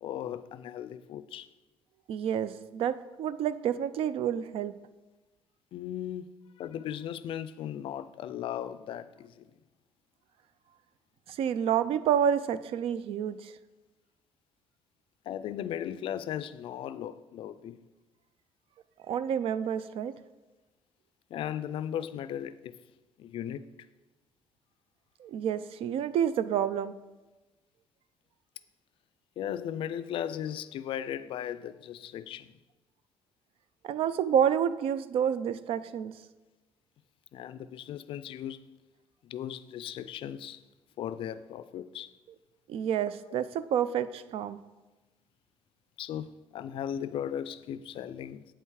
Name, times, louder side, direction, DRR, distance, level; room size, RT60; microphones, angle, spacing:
voice 1, 0.0-1.5 5.7-6.3 6.6-9.5 15.3-17.8 21.3-22.8 23.2-23.7 29.4-32.6 37.3-38.7 39.2-40.6 41.0-42.1 46.0-48.5, left 10 dB, 65° left, 0.4 m, -37 dB
voice 2, 2.1-4.7 11.3-13.5 19.1-20.1 25.2-26.9 33.8-36.1 42.7-44.6, right 9 dB, 70° right, 0.4 m, -29 dB
8.3 x 5.5 x 4.8 m
cardioid pair, 155°, 10 cm